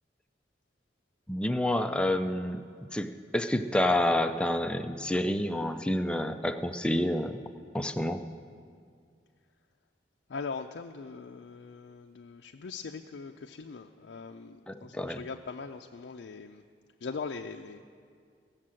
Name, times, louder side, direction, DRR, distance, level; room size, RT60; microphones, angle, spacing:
voice 1, 1.3-2.6 2.9-7.4 7.7-8.2 14.7-15.2, left 1 dB, 5° left, 7 dB, 0.4 m, -28 dB
voice 2, 10.3-16.6 17.0-17.8, left 4 dB, 80° left, 3 dB, 0.4 m, -41 dB
16.0 x 6.6 x 7.5 m, 2.2 s
head